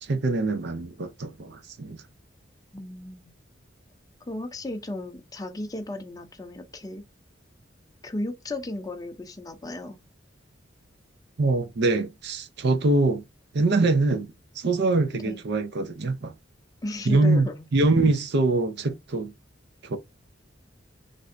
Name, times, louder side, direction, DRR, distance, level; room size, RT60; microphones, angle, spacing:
voice 1, 0.0-2.0 11.4-13.2 13.5-14.3 14.6-16.3 17.1-17.4 17.7-19.3 19.8-20.0, right 2 dB, 60° right, 0.6 m, -23 dB
voice 2, 2.7-3.3 4.3-7.0 8.0-10.0 15.1-15.4 16.8-17.7, left 1 dB, 20° left, 0.5 m, -35 dB
3.2 x 2.6 x 2.5 m
head